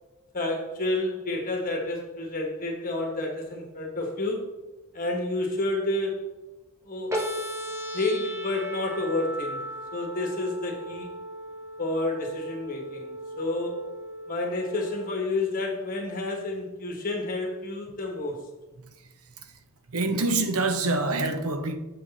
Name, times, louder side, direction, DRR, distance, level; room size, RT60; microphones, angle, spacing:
voice 1, 0.3-4.5 4.9-6.2 6.8-7.2 7.9-9.6 9.9-11.1 11.8-13.8 14.3-18.4, left 2 dB, 40° left, 1.2 m, -30 dB
sound 1, 7.1-15.1, equal, 15° right, 1.2 m, -37 dB
voice 2, 19.9-21.8, right 2 dB, 85° right, 0.9 m, -26 dB
7.7 x 6.3 x 4.1 m
head